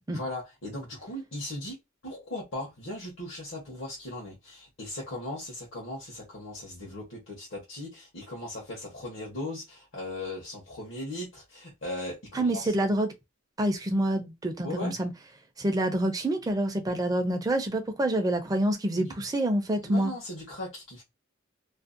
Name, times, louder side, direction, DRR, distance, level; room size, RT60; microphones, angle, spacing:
voice 1, 0.1-1.7 2.0-12.7 14.6-14.9 18.9-19.1 19.8-21.0, left 1 dB, 65° left, 0.9 m, -38 dB
voice 2, 12.3-13.1 13.6-15.1 15.6-20.1, right 1 dB, 20° right, 0.4 m, -27 dB
2.5 x 2.1 x 2.4 m
head